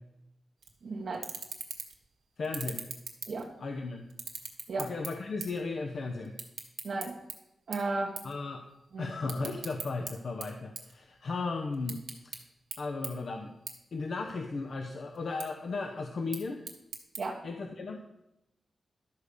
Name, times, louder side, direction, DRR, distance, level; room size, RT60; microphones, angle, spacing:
sound 1, 0.6-0.8 1.1-2.0 2.4-3.7 4.1-5.7 5.9-7.3 7.7-7.9 8.2-8.4 8.7-10.1 10.4-11.4 11.7-12.4 12.7-12.8 13.0-13.1 13.7-13.8 14.1-14.7 15.1-15.5 16.1-17.2, right 6 dB, 90° right, 1.5 m, -40 dB
voice 1, 0.8-1.2 3.3-3.5 4.7-4.9 6.8-7.1 7.7-8.1 8.9-9.1 17.2-17.4, right 3 dB, 65° right, -1 dB, 1.0 m, -33 dB
voice 2, 2.4-2.8 3.6-4.0 4.8-6.3 8.2-8.7 9.0-12.3 12.8-13.6 13.9-16.6 17.4-18.0, left 3 dB, 60° left, 4 dB, 0.8 m, -35 dB
12.0 x 4.9 x 6.8 m, 0.89 s
wide cardioid pair, 125°, 0 cm